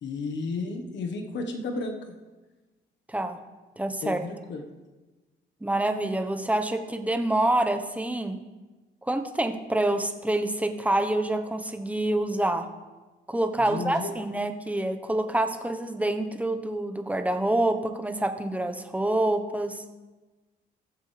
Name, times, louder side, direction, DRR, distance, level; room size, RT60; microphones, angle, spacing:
voice 1, 0.0-2.0 4.0-4.6 13.6-14.1, left 3 dB, 65° left, 4 dB, 1.3 m, -33 dB
voice 2, 3.8-4.2 5.6-8.4 9.0-12.7 13.3-19.8, right 1 dB, 5° right, 7 dB, 1.0 m, -27 dB
18.0 x 7.4 x 3.3 m, 1.2 s
cardioid pair, 90°, 20 cm